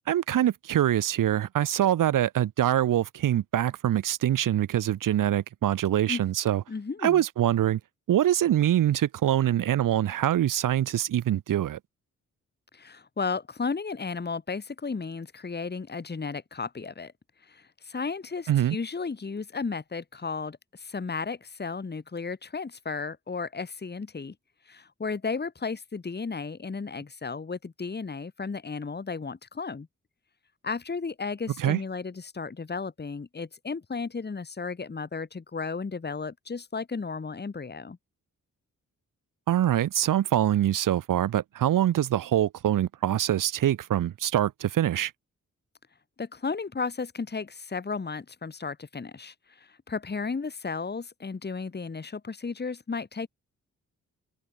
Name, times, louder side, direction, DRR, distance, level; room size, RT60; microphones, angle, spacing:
voice 1, 0.0-6.6 7.0-7.8 8.1-11.8 18.5-18.8 31.6-31.8 39.5-45.1, right 11 dB, 85° right, 1.3 m, -24 dB
voice 2, 6.7-7.2 12.7-17.1 17.5-24.3 24.7-29.9 30.6-38.0 46.2-53.3, left 4 dB, 30° left, 1.8 m, -34 dB
cardioid pair, 65°, 32 cm